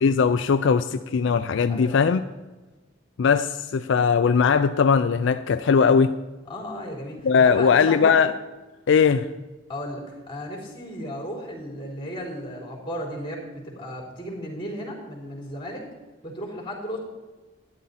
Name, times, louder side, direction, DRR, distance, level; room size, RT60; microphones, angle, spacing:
voice 1, 0.0-2.2 3.2-6.1 7.2-8.3 8.9-9.3, left 6 dB, 70° left, 10 dB, 0.4 m, -19 dB
voice 2, 1.7-2.1 6.5-8.1 9.7-15.8 16.2-17.0, equal, 25° left, -2 dB, 3.7 m, -34 dB
12.5 x 10.5 x 4.2 m, 1.2 s
head